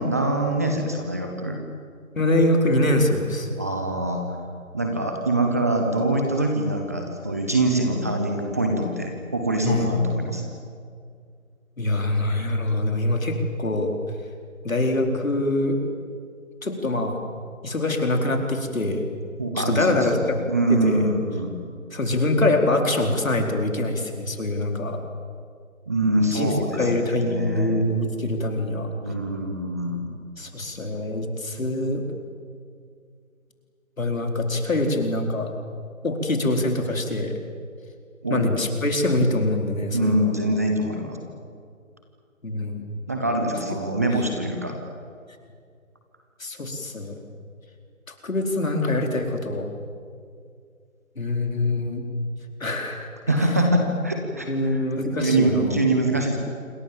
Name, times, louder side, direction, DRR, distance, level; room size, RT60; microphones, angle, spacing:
voice 1, 0.0-1.6 3.6-4.4 4.7-10.5 19.4-21.5 25.9-27.8 29.0-30.1 38.2-38.5 39.9-41.2 43.1-44.7 53.3-56.4, right 2 dB, 10° right, 2 dB, 0.9 m, -24 dB
voice 2, 2.1-3.5 9.6-9.9 11.8-13.9 14.6-15.8 16.6-17.2 17.6-19.0 19.6-20.4 20.7-21.1 21.9-25.0 26.3-28.9 30.4-32.1 34.0-35.5 36.0-37.3 38.3-40.3 42.4-42.9 43.9-44.1 46.4-47.2 48.2-49.7 51.2-52.0 52.6-53.1 54.5-55.8, left 2 dB, 70° left, 3 dB, 4.6 m, -24 dB
27.0 x 24.0 x 7.5 m, 2.2 s
figure-of-eight pair, 160°, 41 cm